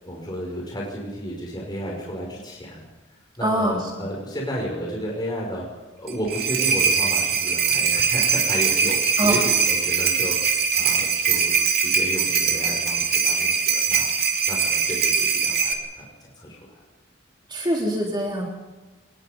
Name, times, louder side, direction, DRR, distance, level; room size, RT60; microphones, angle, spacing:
voice 1, 0.0-2.8 3.4-5.6 6.0-14.1 14.5-16.6, equal, 20° left, -3 dB, 6.1 m, -32 dB
voice 2, 3.4-3.9 9.2-9.4 17.5-18.4, right 1 dB, 25° right, -1 dB, 3.4 m, -23 dB
sound 1, 6.1-15.7, right 6 dB, 50° right, 3.0 m, -22 dB
27.0 x 20.5 x 5.4 m, 1.2 s
head